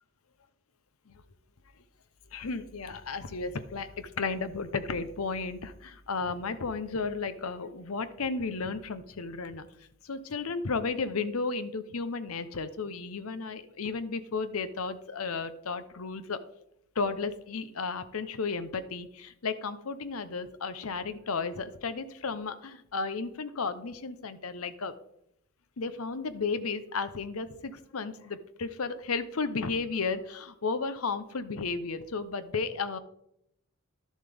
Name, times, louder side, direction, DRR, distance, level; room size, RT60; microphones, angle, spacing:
voice 1, 2.3-9.7 10.0-16.4 16.9-24.9 25.8-33.0, left 4 dB, 85° left, 12 dB, 0.8 m, -33 dB
11.5 x 7.2 x 3.5 m, 0.75 s
head